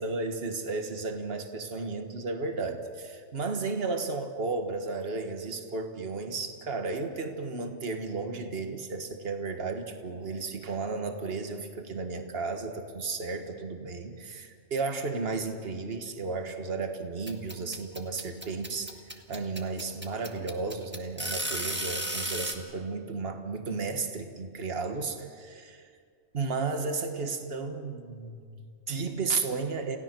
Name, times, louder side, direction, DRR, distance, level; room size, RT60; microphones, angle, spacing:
voice 1, 0.0-19.0 19.3-25.9 26.3-30.0, right 4 dB, 50° right, 6 dB, 1.7 m, -33 dB
sound 1, 17.3-22.5, right 1 dB, 10° right, 1.5 m, -34 dB
28.5 x 16.5 x 6.0 m, 2.1 s
omnidirectional pair, 1.3 m